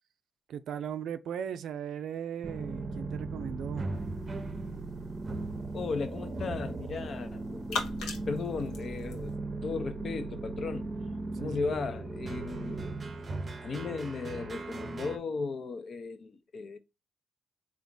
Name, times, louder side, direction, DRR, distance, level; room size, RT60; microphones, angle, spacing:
voice 1, 0.5-3.9 11.4-11.8, right 8 dB, 70° right, 0.4 m, -37 dB
sound 1, 2.4-15.2, right 2 dB, 30° right, 0.6 m, -37 dB
sound 2, 3.9-9.4, left 4 dB, 85° left, 0.8 m, -43 dB
voice 2, 5.7-9.3 9.6-10.9 11.4-12.8 13.6-16.8, left 4 dB, 50° left, 0.6 m, -36 dB
3.5 x 2.4 x 3.8 m
cardioid pair, 90°, 0 cm